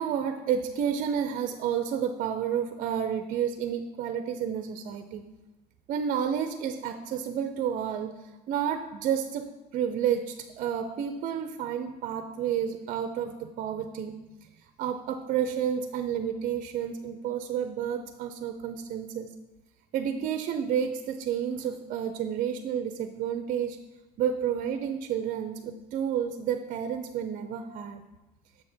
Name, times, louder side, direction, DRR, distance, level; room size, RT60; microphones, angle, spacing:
voice 1, 0.0-5.2 5.9-8.1 8.5-9.5 9.7-14.1 14.8-19.3 19.9-23.8 24.2-28.0, right 8 dB, 50° right, 7 dB, 0.5 m, -30 dB
7.0 x 5.4 x 3.4 m, 1.0 s
cardioid pair, 125°, 19 cm